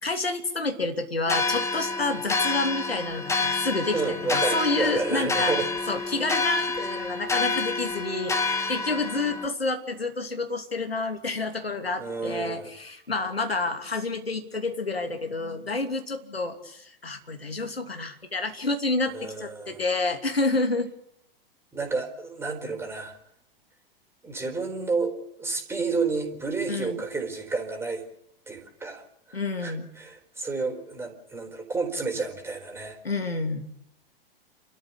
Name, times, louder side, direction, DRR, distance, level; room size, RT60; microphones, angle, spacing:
voice 1, 0.0-5.6 5.9-20.9 26.7-27.0 29.3-29.9 33.0-33.7, left 3 dB, 80° left, 6 dB, 2.9 m, -29 dB
sound 1, 1.3-9.5, left 3 dB, 10° left, 2.1 m, -28 dB
voice 2, 3.9-5.7 12.0-12.7 19.1-19.8 21.7-23.2 24.2-28.0 28.5-29.0 29.3-33.0, right 4 dB, 10° right, 4 dB, 4.4 m, -30 dB
29.0 x 13.5 x 8.5 m, 0.78 s
figure-of-eight pair, 100°, 30 cm